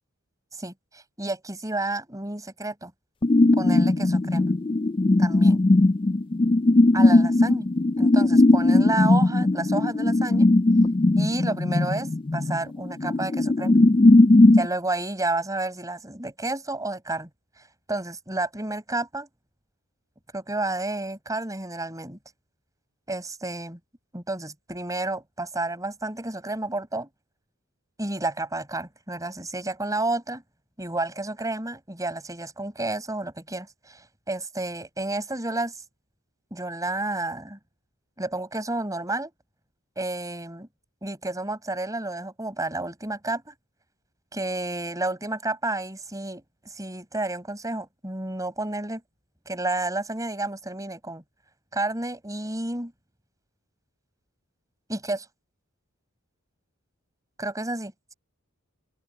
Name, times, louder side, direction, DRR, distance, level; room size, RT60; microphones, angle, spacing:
voice 1, 0.6-2.9 3.5-4.5 5.2-5.6 6.9-7.7 8.0-10.5 11.2-13.7 14.6-17.3 17.9-19.3 20.3-22.2 23.1-23.8 24.1-27.1 28.0-30.4 30.8-35.7 36.5-37.6 38.2-39.3 40.0-40.7 41.0-43.5 44.3-49.0 49.5-51.2 51.7-52.9 54.9-55.3 57.4-58.1, right 2 dB, 15° right, 5.8 m, -31 dB
sound 1, 3.2-14.7, left 2 dB, 25° left, 0.4 m, -19 dB
open air
head